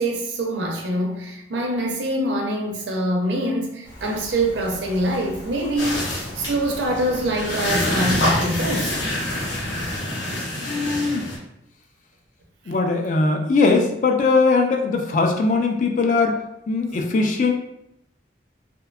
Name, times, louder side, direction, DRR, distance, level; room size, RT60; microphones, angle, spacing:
voice 1, 0.0-6.0 6.4-8.9, right 1 dB, 75° right, 1 dB, 0.5 m, -24 dB
Rain, 3.8-10.0, equal, 25° left, 0.8 m, -39 dB
sound 1, 5.8-11.4, left 1 dB, 75° left, 0.7 m, -26 dB
voice 2, 10.6-11.3 12.7-16.4 16.7-17.5, left 3 dB, 45° left, 3 dB, 0.3 m, -20 dB
2.7 x 2.2 x 2.3 m, 0.80 s
head